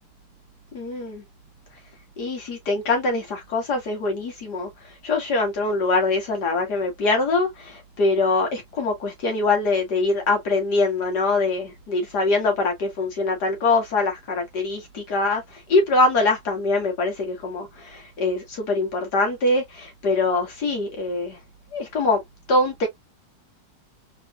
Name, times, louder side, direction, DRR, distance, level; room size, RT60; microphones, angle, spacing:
voice 1, 0.7-1.2 2.2-4.7 5.0-15.4 15.7-21.4 21.7-22.2 22.5-22.9, left 3 dB, 70° left, 2.2 m, -23 dB
4.2 x 3.2 x 2.4 m
omnidirectional pair, 1.8 m